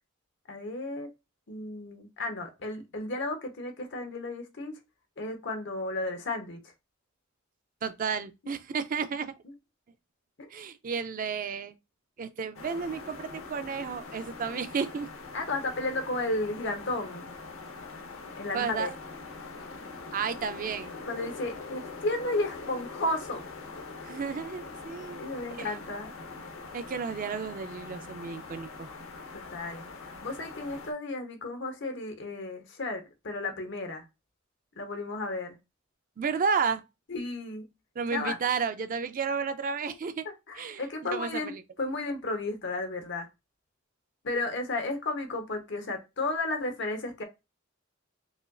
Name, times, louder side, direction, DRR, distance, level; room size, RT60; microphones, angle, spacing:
voice 1, 0.5-1.1 1.5-4.7 5.2-6.7 10.4-10.5 15.3-17.3 18.4-18.9 21.0-23.4 25.2-26.1 29.3-34.0 34.8-35.6 37.1-37.7 38.1-38.4 39.9-40.0 40.2-41.5 41.8-43.3 44.2-47.2, left 2 dB, 60° left, 0.9 m, -33 dB
voice 2, 7.8-9.3 10.5-11.7 12.2-15.1 18.5-18.9 20.1-20.9 24.0-25.2 25.6-25.7 26.7-28.9 36.2-36.8 38.0-40.3 40.6-40.8 41.1-41.6, right 6 dB, 40° right, 0.4 m, -32 dB
sound 1, 12.5-30.9, left 3 dB, 90° left, 0.8 m, -43 dB
4.9 x 2.5 x 2.3 m
head